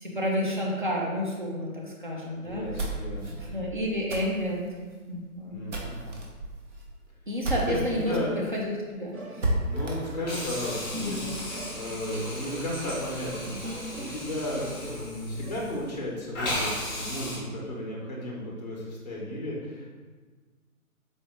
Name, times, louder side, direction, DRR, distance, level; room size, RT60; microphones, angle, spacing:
voice 1, 0.0-2.6 3.3-4.6 5.1-5.6 7.3-9.5 11.0-11.4, equal, 35° right, -2 dB, 0.5 m, -30 dB
voice 2, 2.4-3.5 5.5-6.0 7.7-8.3 9.7-19.9, left 1 dB, 30° left, -3 dB, 0.5 m, -34 dB
sound 1, 2.5-8.2 8.5-8.6 8.9-9.0 9.4-11.5, right 1 dB, 55° right, 0.9 m, -34 dB
sound 2, 9.1-15.5, right 1 dB, 70° right, 1.2 m, -41 dB
Hiss, 10.3-16.0 16.3-17.4, left 1 dB, 15° left, 0.9 m, -36 dB
4.0 x 2.4 x 3.2 m, 1.4 s
figure-of-eight pair, 155°, 43 cm